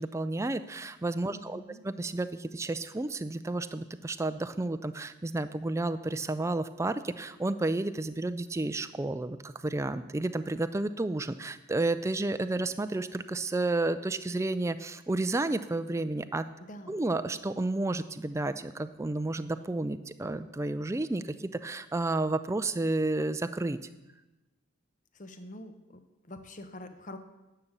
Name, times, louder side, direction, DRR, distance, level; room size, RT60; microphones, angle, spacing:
voice 1, 0.0-16.5 16.9-23.8, right 2 dB, 15° right, 11 dB, 0.3 m, -31 dB
voice 2, 1.3-1.9 16.7-17.0 25.1-26.0 26.3-27.2, left 1 dB, 35° left, 9 dB, 0.8 m, -45 dB
11.0 x 6.7 x 7.3 m, 1.1 s
head